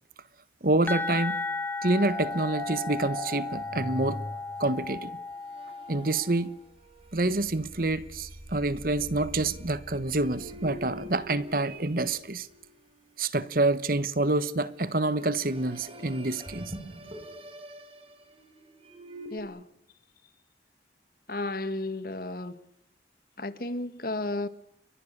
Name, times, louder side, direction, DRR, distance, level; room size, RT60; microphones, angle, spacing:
voice 1, 0.6-1.4 1.8-4.2 4.6-5.1 5.9-6.5 7.1-12.5 13.2-16.7, right 2 dB, 50° right, 1.2 m, -27 dB
sound 1, 0.9-6.5, left 3 dB, 10° left, 1.1 m, -35 dB
sound 2, 2.0-13.1 14.6-19.4, equal, 30° right, 4.6 m, -43 dB
voice 2, 19.3-19.6 21.3-22.6 23.4-24.5, left 2 dB, 50° left, 1.8 m, -33 dB
30.0 x 23.5 x 6.8 m
head